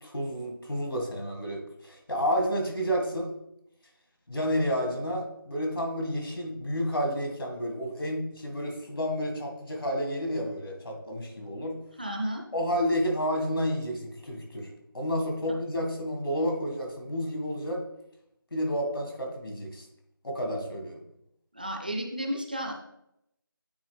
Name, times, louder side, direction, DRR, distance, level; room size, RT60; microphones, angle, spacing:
voice 1, 0.0-3.3 4.3-11.8 12.5-17.8 18.5-19.9 20.2-21.0, equal, 80° left, 2 dB, 2.0 m, -30 dB
voice 2, 12.0-12.4 21.5-22.7, equal, 25° right, 2 dB, 0.4 m, -32 dB
8.6 x 3.9 x 3.4 m, 0.80 s
figure-of-eight pair, 170°, 12 cm